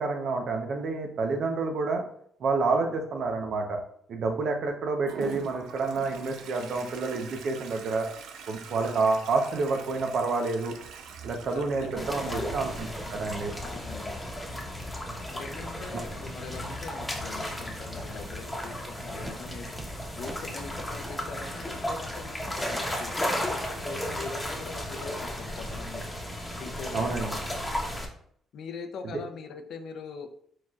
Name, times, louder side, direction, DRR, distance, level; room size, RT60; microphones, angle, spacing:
voice 1, 0.0-2.0 2.4-3.8 4.1-8.1 8.5-10.7 11.2-13.5 15.9-16.0 26.9-27.4 29.1-29.2, right 3 dB, 65° right, 4 dB, 0.8 m, -29 dB
Toilet flush, 5.1-18.7, right 6 dB, 85° right, 0.5 m, -45 dB
voice 2, 8.7-9.1 11.5-12.6 13.6-14.2 15.3-19.7 20.2-26.0 26.6-27.2 28.5-30.3, left 5 dB, 70° left, 6 dB, 0.6 m, -42 dB
sound 1, 12.0-28.1, left 1 dB, 10° left, 1.1 m, -34 dB
sound 2, 12.6-12.7 13.1-13.3 13.7-13.9 14.3-14.4 14.8-14.9 15.3-15.5 16.0-16.1 16.5-16.6 17.1-17.2 17.6-17.8 18.2-18.3 18.7-18.8 19.2-19.4 19.7-19.9 20.2-20.4 20.8-20.9, right 1 dB, 10° right, 0.5 m, -46 dB
4.5 x 4.2 x 2.4 m, 0.65 s
cardioid pair, 90°, 0 cm